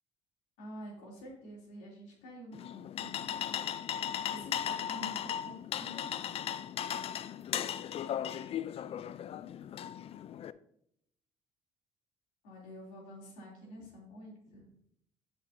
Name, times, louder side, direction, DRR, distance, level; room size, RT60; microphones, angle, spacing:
voice 1, 0.6-3.4 4.3-5.5 5.8-6.4 12.4-14.6, equal, 75° left, -3 dB, 3.1 m, -48 dB
sound 1, 2.5-10.5, left 10 dB, 50° left, 0.4 m, -37 dB
11.5 x 5.2 x 2.7 m, 0.73 s
supercardioid pair, 65°, 13 cm